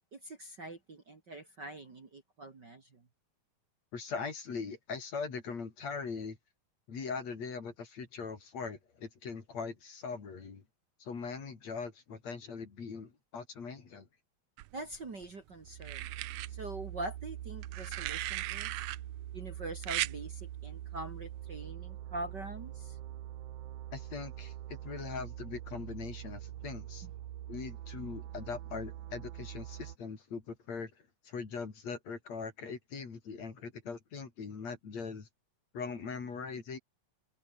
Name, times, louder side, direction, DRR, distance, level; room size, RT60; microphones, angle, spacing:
voice 1, 0.1-3.0 14.7-16.1 16.5-18.7 19.3-23.0 27.0-27.1, right 2 dB, 35° right, 2.6 m, -44 dB
voice 2, 3.9-6.4 6.9-10.6 11.0-14.1 23.9-27.1 27.5-30.9 31.2-35.3 35.7-36.8, left 5 dB, 50° left, 4.6 m, -41 dB
sound 1, 14.6-15.3 15.8-16.5 17.6-19.0 19.8-20.1 21.5-21.7, right 17 dB, 85° right, 1.5 m, -37 dB
sound 2, 15.5-30.0, right 12 dB, 65° right, 2.5 m, -44 dB
omnidirectional pair, 4.0 m